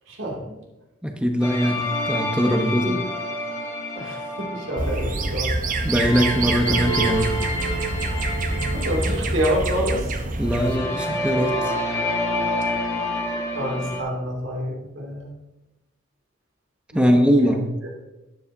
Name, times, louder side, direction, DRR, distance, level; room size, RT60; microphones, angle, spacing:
voice 1, 0.1-0.6 2.5-3.0 3.9-5.8 8.7-10.2 13.5-15.3 16.9-17.6, equal, 75° right, -1 dB, 2.6 m, -28 dB
voice 2, 1.0-3.0 5.8-7.4 10.4-11.7 16.9-17.7, equal, 5° right, 4 dB, 0.8 m, -21 dB
sound 1, 1.4-5.3 5.7-9.7 10.4-14.0, left 1 dB, 15° left, 1.5 m, -28 dB
sound 2, 4.8-10.8, right 2 dB, 40° right, 0.8 m, -26 dB
12.0 x 9.8 x 2.7 m, 0.99 s
head